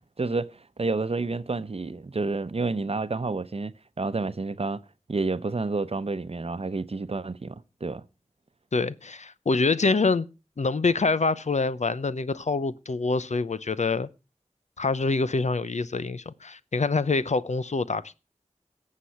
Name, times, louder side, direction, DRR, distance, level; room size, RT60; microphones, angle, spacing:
voice 1, 0.0-4.8 5.1-8.0, right 3 dB, 55° right, 0.8 m, -30 dB
voice 2, 8.7-10.3 10.6-14.1 14.8-18.1, left 3 dB, 75° left, 0.7 m, -25 dB
18.0 x 7.6 x 5.7 m
wide cardioid pair, 60°, 12 cm